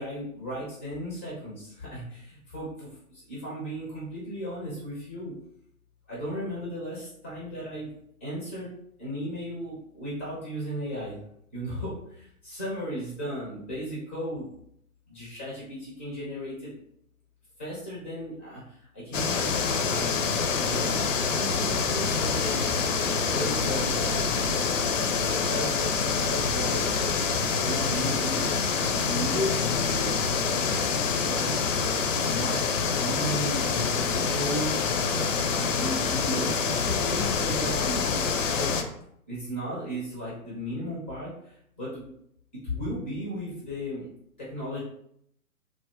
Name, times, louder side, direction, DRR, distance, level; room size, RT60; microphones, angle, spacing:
voice 1, 0.0-5.3 6.1-7.9 8.2-8.7 9.0-11.2 11.5-14.5 15.1-16.7 17.6-20.3 20.6-20.9 21.3-22.6 23.3-24.0 24.8-26.8 27.6-28.5 29.0-30.1 30.5-30.6 31.2-31.5 32.2-32.6 33.0-34.8 35.6-38.7 39.3-42.1 42.5-44.1 44.4-44.8, equal, 10° left, -7 dB, 0.4 m, -35 dB
sound 1, 19.1-38.8, left 5 dB, 60° left, 0.5 m, -26 dB
sound 2, 21.3-33.7, right 3 dB, 55° right, 0.5 m, -41 dB
3.3 x 2.1 x 2.9 m, 0.72 s
hypercardioid pair, 130°, 44 cm